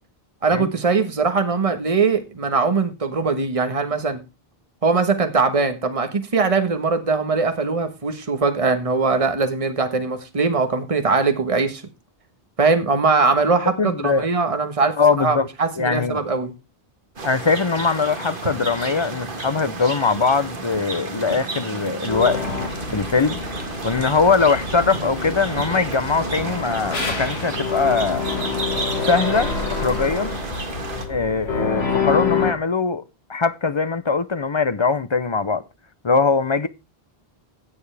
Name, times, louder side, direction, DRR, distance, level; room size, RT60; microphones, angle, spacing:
voice 1, 0.4-4.2 4.8-11.8 12.6-16.5, right 4 dB, 35° right, 1.4 m, -21 dB
voice 2, 13.8-14.3 15.0-15.5 15.8-16.2 17.2-22.4 22.9-23.4 23.8-28.3 29.1-30.4 31.1-33.0 33.3-35.6 36.0-36.7, left 4 dB, 35° left, 0.6 m, -21 dB
sound 1, 17.2-31.1, right 3 dB, 55° right, 1.8 m, -31 dB
sound 2, 22.1-32.5, left 5 dB, 90° left, 2.1 m, -27 dB
16.5 x 7.1 x 3.3 m
omnidirectional pair, 1.0 m